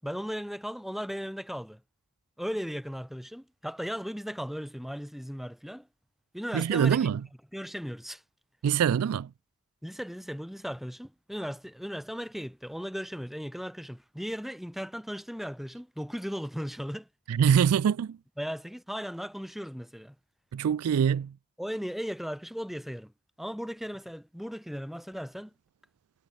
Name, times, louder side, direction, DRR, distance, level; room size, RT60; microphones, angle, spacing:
voice 1, 0.0-1.8 2.4-5.9 6.3-7.2 7.5-8.2 9.8-17.1 18.4-20.1 21.6-23.1 23.4-25.5, equal, ahead, 2.5 m, -37 dB
voice 2, 6.5-7.2 8.6-9.3 17.3-18.2 20.5-21.4, right 8 dB, 75° right, 0.3 m, -24 dB
head